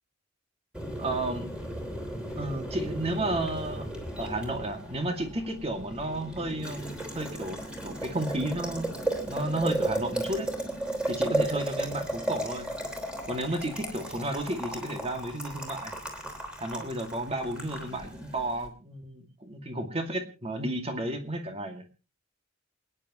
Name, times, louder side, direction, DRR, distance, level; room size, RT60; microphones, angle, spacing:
Boiling, 0.7-18.7, right 1 dB, 5° right, 3.3 m, -35 dB
voice 1, 1.0-1.5 2.4-3.9 4.2-10.5 11.1-12.7 13.3-15.9 16.6-21.8, right 1 dB, 30° right, 5 dB, 2.3 m, -32 dB
28.5 x 10.0 x 3.1 m, 0.32 s
head